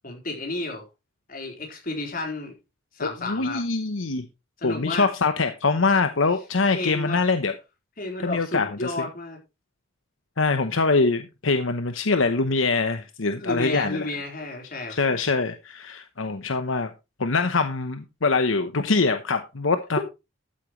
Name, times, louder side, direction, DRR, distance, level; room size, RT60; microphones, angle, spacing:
voice 1, 0.0-0.9 1.3-2.5 2.9-3.6 4.6-5.1 6.7-7.3 8.0-9.4 13.3-15.0, left 2 dB, 45° left, 4.2 m, -32 dB
voice 2, 3.0-4.2 4.6-7.5 8.2-8.9 10.4-14.1 14.9-16.9 17.2-20.0, left 3 dB, 80° left, 1.0 m, -24 dB
13.0 x 8.7 x 3.2 m
head